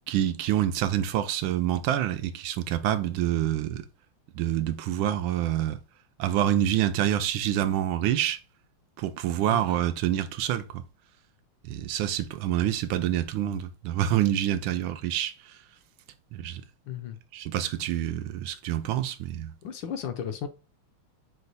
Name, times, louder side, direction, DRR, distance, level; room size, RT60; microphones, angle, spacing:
voice 1, 0.1-3.9 4.3-5.8 6.2-8.4 9.0-10.8 11.6-15.6 16.3-16.6 17.3-19.5, right 11 dB, 80° right, 1.3 m, -27 dB
voice 2, 16.8-17.2 19.6-20.5, left 8 dB, 75° left, 1.3 m, -34 dB
4.8 x 2.3 x 4.0 m
omnidirectional pair, 2.3 m